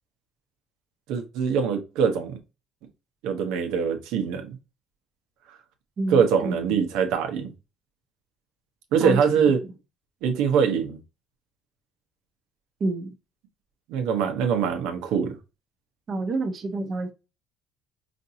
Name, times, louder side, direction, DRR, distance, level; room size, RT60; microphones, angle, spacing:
voice 1, 1.1-2.4 3.2-4.6 6.1-7.5 8.9-9.6 10.2-11.0 13.9-15.4, right 7 dB, 85° right, 1.0 m, -23 dB
voice 2, 6.0-6.8 9.0-9.2 12.8-13.1 16.1-17.1, right 2 dB, 40° right, 0.8 m, -28 dB
5.1 x 2.6 x 2.8 m
cardioid pair, 135°, 0 cm